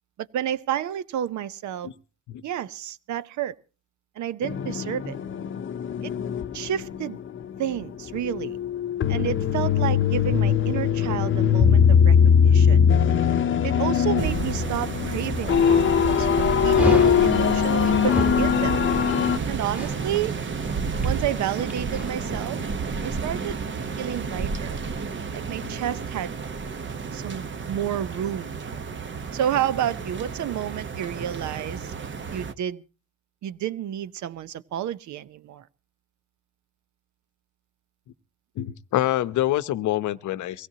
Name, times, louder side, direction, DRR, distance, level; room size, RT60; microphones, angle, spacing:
voice 1, 0.2-1.9 2.4-3.5 4.2-5.2 6.0-6.1 6.5-7.2 7.6-8.6 9.1-12.8 13.6-18.8 19.5-20.4 21.0-22.6 23.0-23.6 24.0-24.8 25.3-26.4 27.1-28.5 29.3-31.9 32.3-32.8 33.4-35.7, right 10 dB, 70° right, 0.8 m, -30 dB
sound 1, 4.4-7.8 8.1-19.4, left 7 dB, 40° left, 0.8 m, -21 dB
sound 2, 14.2-32.5, right 5 dB, 40° right, 1.0 m, -31 dB
Dog, 16.7-22.1, equal, 5° right, 1.5 m, -32 dB
voice 2, 38.6-40.7, left 13 dB, 75° left, 0.8 m, -26 dB
23.0 x 16.5 x 2.8 m
cardioid pair, 90°, 30 cm